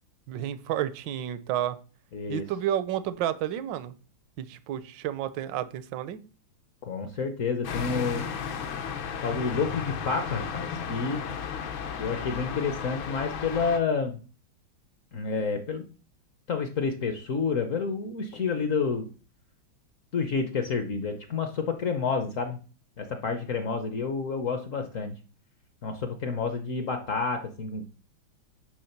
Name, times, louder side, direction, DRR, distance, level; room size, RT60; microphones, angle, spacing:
voice 1, 0.3-1.8 2.3-3.9 4.4-6.2, right 11 dB, 70° right, 13 dB, 1.2 m, -31 dB
voice 2, 2.1-2.4 6.8-8.3 9.2-11.2 12.0-14.2 15.1-15.8 16.5-19.1 20.1-22.6 23.0-25.2 25.8-27.8, left 5 dB, 60° left, 7 dB, 0.9 m, -29 dB
sound 1, 7.6-13.8, left 6 dB, 80° left, 1.7 m, -34 dB
9.6 x 3.3 x 5.8 m, 0.37 s
omnidirectional pair, 2.2 m